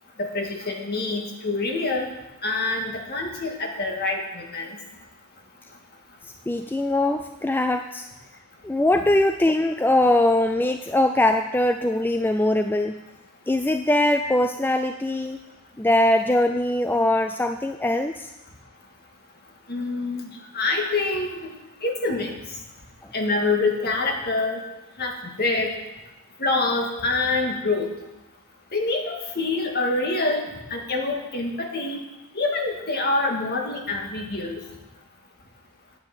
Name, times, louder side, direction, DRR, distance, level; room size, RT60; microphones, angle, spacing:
voice 1, 0.2-2.1 2.4-4.7 19.7-20.3 20.5-21.4 21.8-22.3 23.1-24.6 25.0-25.7 26.4-27.9 28.7-32.0 32.4-34.6, left 3 dB, 45° left, 2 dB, 1.9 m, -26 dB
voice 2, 6.5-8.1 8.6-13.0 13.5-15.4 15.8-18.3, left 1 dB, 10° left, 7 dB, 0.3 m, -21 dB
9.3 x 9.0 x 7.6 m, 1.0 s
head